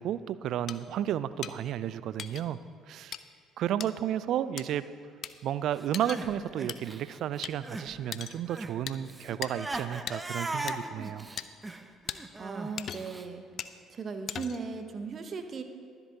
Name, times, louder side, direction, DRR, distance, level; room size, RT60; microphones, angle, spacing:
voice 1, 0.0-2.6 2.9-3.2 3.6-4.8 5.4-11.3, right 10 dB, 60° right, 16 dB, 0.4 m, -32 dB
sound 1, 0.7-0.8 1.4-1.5 2.2-2.4 3.1-3.2 3.8-3.9 4.6-4.7 5.2-5.3 5.9-6.2 6.7-6.8 7.4-7.5 8.1-8.4 8.9-9.0 9.4-9.5 10.1-10.2 10.7-10.8 11.4-11.5 12.1-12.2 12.8-13.2 13.6-13.7 14.3-14.7, left 9 dB, 50° left, 0.4 m, -38 dB
Crying sobbing, 5.8-7.9 8.2-13.3, right 2 dB, 20° right, 0.7 m, -39 dB
voice 2, 12.4-13.4 13.9-15.6, right 5 dB, 45° right, 8 dB, 1.0 m, -37 dB
23.0 x 8.0 x 2.9 m, 2.1 s
hypercardioid pair, 50°, 0 cm